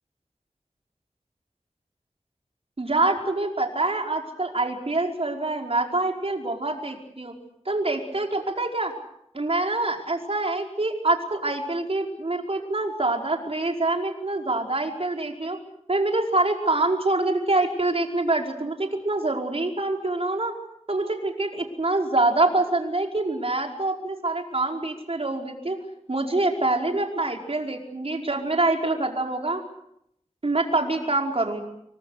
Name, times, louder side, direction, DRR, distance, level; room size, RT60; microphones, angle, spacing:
voice 1, 2.8-7.3 7.7-8.9 9.3-15.6 15.9-20.5 20.9-25.8 26.1-29.6 30.4-31.6, right 2 dB, 55° right, 2 dB, 5.2 m, -25 dB
29.0 x 23.0 x 6.7 m, 0.77 s
wide cardioid pair, 65°, 12 cm